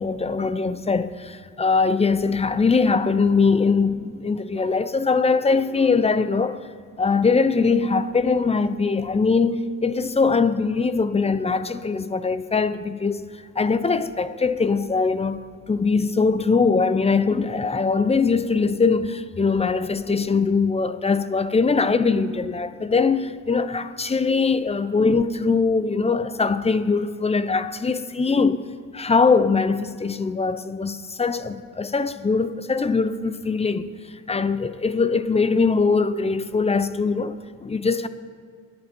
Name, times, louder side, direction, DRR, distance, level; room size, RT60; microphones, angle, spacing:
voice 1, 0.0-6.7 7.0-13.2 13.6-15.4 15.7-28.7 28.9-38.1, left 4 dB, 20° left, 0.8 m, -22 dB
23.0 x 10.5 x 4.6 m
cardioid pair, 90°, 30 cm